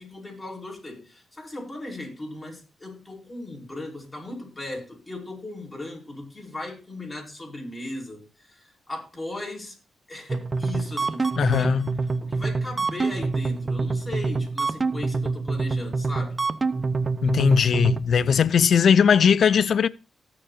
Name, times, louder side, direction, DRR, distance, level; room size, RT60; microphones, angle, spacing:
voice 1, 0.0-9.8 10.1-11.8 12.2-16.4, left 2 dB, 20° left, 5.3 m, -37 dB
sound 1, 10.3-18.0, right 4 dB, 35° right, 0.8 m, -26 dB
voice 2, 11.4-11.9 17.2-19.9, left 7 dB, 65° left, 0.5 m, -19 dB
19.0 x 7.0 x 2.5 m
cardioid pair, 75°, 0 cm